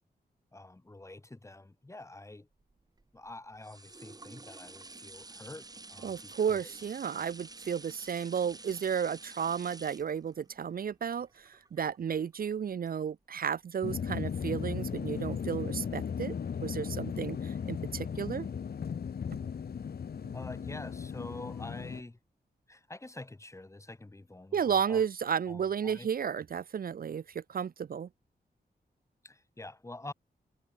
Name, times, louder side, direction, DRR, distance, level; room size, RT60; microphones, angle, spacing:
voice 1, 0.5-2.5 3.1-6.8 20.3-22.2 22.7-25.0 25.5-26.1 29.2-30.1, left 2 dB, 15° left, 2.5 m, -46 dB
sound 1, 2.6-12.3 12.9-13.0, right 3 dB, 20° right, 1.3 m, -50 dB
voice 2, 6.0-16.3 16.6-18.5 24.5-28.1, right 7 dB, 60° right, 0.6 m, -33 dB
sound 2, 13.8-22.0, left 7 dB, 65° left, 1.7 m, -36 dB
wide cardioid pair, 135°, 17 cm